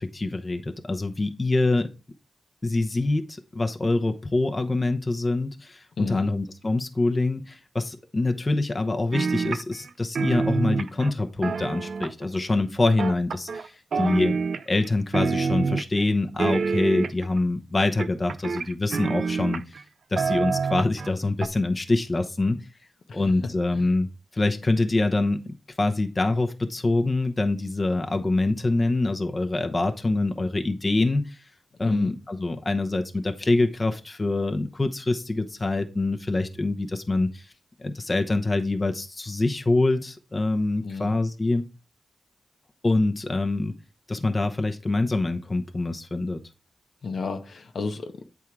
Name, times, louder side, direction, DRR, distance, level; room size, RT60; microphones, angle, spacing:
voice 1, 0.0-1.9 2.6-14.4 14.7-19.8 20.1-22.6 23.1-24.1 24.3-31.4 31.8-37.5 37.8-41.6 42.8-43.7 44.1-46.4, left 2 dB, 30° left, 0.8 m, -25 dB
voice 2, 6.0-6.3 23.1-23.2 23.7-23.9 31.8-32.1 40.8-41.2 47.0-48.3, left 4 dB, 70° left, 0.9 m, -32 dB
sound 1, 9.1-9.9 10.2-12.4 13.0-13.7 13.9-14.9 15.1-16.0 16.4-17.4 18.0-19.8 20.2-21.1 21.4-21.5, right 5 dB, 75° right, 0.4 m, -27 dB
8.5 x 3.6 x 4.6 m
cardioid pair, 80°, 0 cm